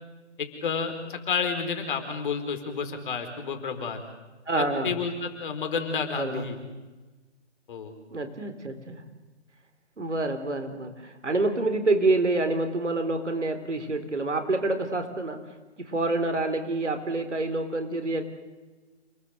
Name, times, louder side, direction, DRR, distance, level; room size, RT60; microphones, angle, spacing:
voice 1, 0.4-4.0 4.6-6.6 7.7-7.9, left 5 dB, 45° left, 6 dB, 4.6 m, -30 dB
voice 2, 4.5-4.9 6.2-6.5 8.1-9.0 10.0-15.4 15.8-18.2, right 2 dB, 85° right, 7 dB, 3.9 m, -27 dB
29.0 x 19.5 x 8.0 m, 1.2 s
figure-of-eight pair, 145°, 35 cm